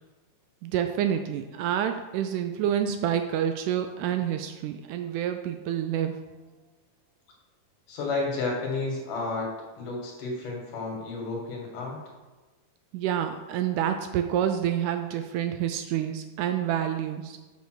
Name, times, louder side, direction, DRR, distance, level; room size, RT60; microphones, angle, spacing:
voice 1, 0.6-6.2 12.9-17.4, right 10 dB, 80° right, 7 dB, 1.9 m, -28 dB
voice 2, 7.9-9.5 9.8-12.0, left 3 dB, 70° left, 0 dB, 3.1 m, -31 dB
6.7 x 5.6 x 6.1 m, 1.2 s
omnidirectional pair, 3.8 m